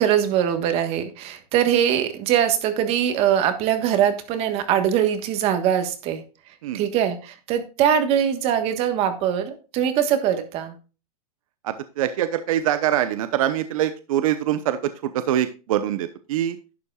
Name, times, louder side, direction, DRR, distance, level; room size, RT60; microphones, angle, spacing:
voice 1, 0.0-6.2 6.7-10.7, right 9 dB, 30° right, 8 dB, 1.4 m, -22 dB
voice 2, 11.6-16.6, right 11 dB, 60° right, 11 dB, 0.9 m, -24 dB
11.5 x 9.8 x 2.4 m, 0.33 s
supercardioid pair, 155°, 19 cm